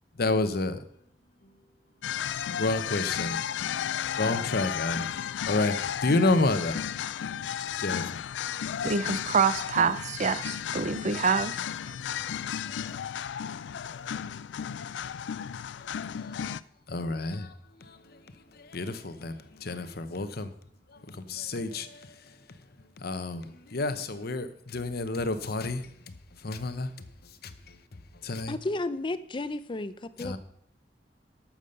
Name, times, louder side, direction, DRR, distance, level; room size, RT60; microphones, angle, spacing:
voice 1, 0.2-0.8 2.6-3.4 4.2-5.0 5.5-5.7 6.0-6.8 7.8-8.0 12.7-12.9 16.2-16.4 16.9-17.5 18.7-20.5 21.3-21.9 23.0-23.5 23.7-25.8 26.4-26.9 28.2-28.5 30.2-30.4, left 2 dB, 60° left, 0.9 m, -29 dB
sound 1, 2.0-16.6, left 9 dB, 80° left, 0.4 m, -33 dB
voice 2, 8.8-11.6, right 5 dB, 40° right, 0.6 m, -26 dB
voice 3, 28.5-30.4, left 2 dB, 30° left, 0.5 m, -33 dB
12.0 x 7.3 x 5.5 m
head